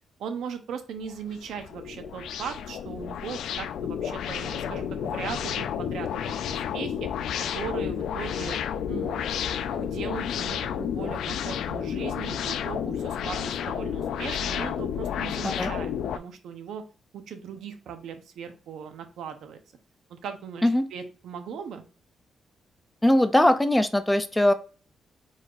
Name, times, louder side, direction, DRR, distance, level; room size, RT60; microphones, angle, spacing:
voice 1, 0.2-7.1 7.5-8.6 8.9-16.8 17.1-19.6 20.1-21.8, right 6 dB, 80° right, 7 dB, 0.8 m, -38 dB
sound 1, 1.0-16.2, left 8 dB, 85° left, 0.3 m, -31 dB
voice 2, 23.0-24.5, left 1 dB, 5° left, 10 dB, 0.3 m, -21 dB
4.7 x 4.1 x 2.5 m, 0.36 s
wide cardioid pair, 160°, 0 cm